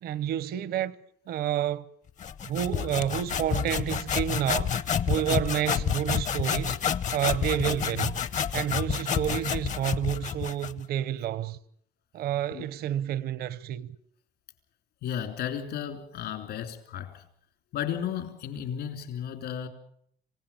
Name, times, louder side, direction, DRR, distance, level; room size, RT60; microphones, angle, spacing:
voice 1, 0.0-1.0 1.3-1.8 2.4-4.7 5.1-6.8 7.1-8.1 8.5-11.6 12.1-13.9, right 11 dB, 70° right, 0.9 m, -29 dB
sound 1, 2.2-10.8, left 8 dB, 45° left, 0.8 m, -29 dB
voice 2, 15.0-17.2 17.7-19.7, left 9 dB, 75° left, 3.2 m, -34 dB
26.5 x 16.5 x 7.1 m
cardioid pair, 110°, 17 cm